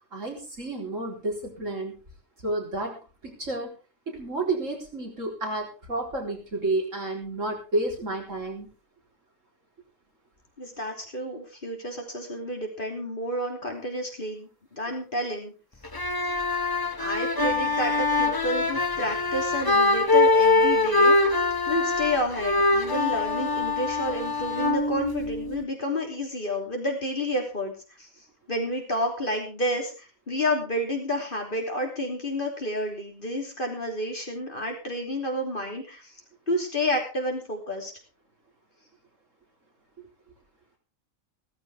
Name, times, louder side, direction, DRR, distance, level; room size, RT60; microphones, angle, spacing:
voice 1, 0.1-2.0 2.4-3.0 3.2-3.7 4.1-8.7 16.3-16.4, right 2 dB, 60° right, 0 dB, 4.4 m, -30 dB
voice 2, 10.6-15.5 17.0-21.4 21.7-27.7 28.0-28.1 28.5-36.1 36.5-37.9, left 1 dB, 35° left, 1 dB, 3.3 m, -30 dB
sound 1, 15.8-25.6, left 3 dB, 20° left, 0.9 m, -23 dB
16.0 x 14.5 x 3.6 m, 0.32 s
omnidirectional pair, 1.5 m